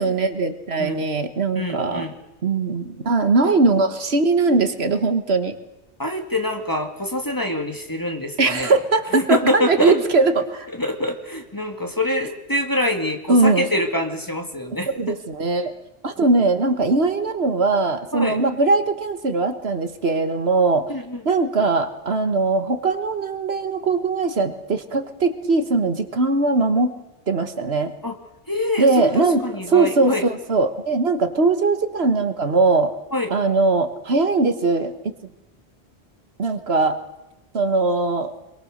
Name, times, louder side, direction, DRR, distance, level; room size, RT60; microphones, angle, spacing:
voice 1, 0.0-2.1 2.4-5.5 8.4-10.7 13.3-13.7 14.9-15.7 16.0-20.9 21.2-26.9 27.3-27.9 28.8-32.9 33.3-35.1 36.4-37.0 37.5-38.3, right 3 dB, 70° right, 9 dB, 1.7 m, -20 dB
voice 2, 1.6-2.1 3.4-3.5 6.0-8.7 9.1-10.0 10.7-15.2 18.1-18.4 20.9-21.2 28.0-28.1 28.5-30.2 33.1-33.3, left 1 dB, 20° left, 4 dB, 2.2 m, -25 dB
26.5 x 22.5 x 6.6 m, 1.0 s
omnidirectional pair, 1.1 m